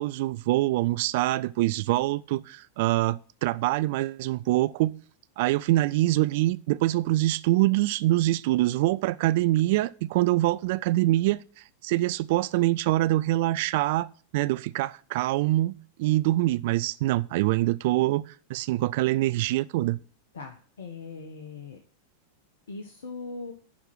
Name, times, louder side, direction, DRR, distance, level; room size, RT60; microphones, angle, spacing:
voice 1, 0.0-4.9 5.4-11.4 11.8-14.1 14.3-20.0, right 17 dB, 50° right, 0.5 m, -24 dB
voice 2, 20.3-21.8 22.7-23.5, left 4 dB, 65° left, 1.2 m, -40 dB
11.5 x 4.4 x 7.9 m
figure-of-eight pair, 90°, 0 cm